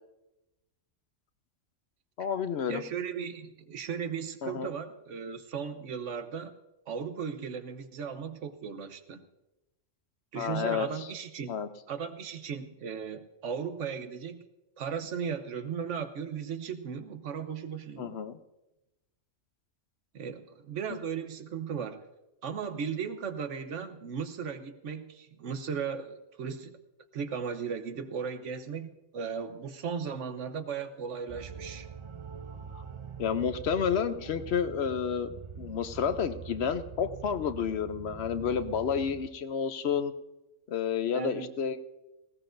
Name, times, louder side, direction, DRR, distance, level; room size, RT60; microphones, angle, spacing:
voice 1, 2.2-2.8 4.4-4.7 10.4-10.9 11.5-11.7 18.0-18.4 33.2-35.3 35.6-40.1 40.7-41.8, left 7 dB, 65° left, 11 dB, 0.9 m, -30 dB
voice 2, 2.7-6.5 6.9-9.2 10.3-11.6 11.9-14.5 14.8-18.2 20.1-22.0 22.4-26.8 27.1-31.9 41.1-41.5, right 6 dB, 80° right, 9 dB, 1.2 m, -36 dB
sound 1, 31.3-39.3, right 6 dB, 40° right, 0.5 m, -44 dB
19.5 x 16.5 x 2.6 m, 0.98 s
omnidirectional pair, 1.3 m